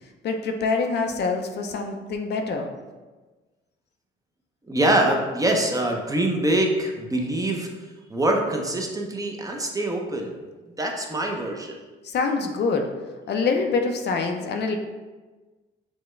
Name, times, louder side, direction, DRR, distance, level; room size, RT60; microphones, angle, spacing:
voice 1, 0.2-2.7 12.0-12.9 13.3-14.8, left 4 dB, 55° left, 4 dB, 0.5 m, -25 dB
voice 2, 4.7-7.7 8.1-10.4 10.8-11.8, right 1 dB, 15° right, 1 dB, 0.6 m, -24 dB
6.2 x 2.2 x 3.2 m, 1.3 s
cardioid pair, 90°, 20 cm